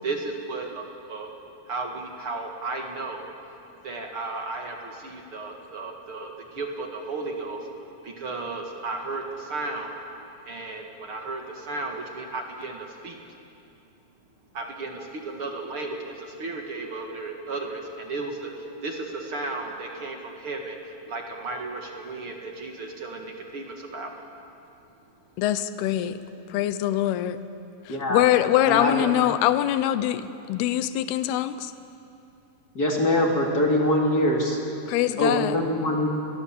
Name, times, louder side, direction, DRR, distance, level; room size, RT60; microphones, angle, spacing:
voice 1, 0.0-1.3 1.7-3.3 3.8-7.7 8.0-10.0 10.4-13.2 14.5-24.2, right 3 dB, 45° right, 2 dB, 2.1 m, -34 dB
voice 2, 25.4-26.2 26.5-27.4 27.9-31.7 34.9-35.5, left 13 dB, 80° left, 12 dB, 2.8 m, -23 dB
voice 3, 27.9-28.2 28.6-28.9 32.7-34.6 35.2-36.1, left 1 dB, 25° left, 0 dB, 2.7 m, -23 dB
30.0 x 22.0 x 7.6 m, 2.7 s
omnidirectional pair, 4.7 m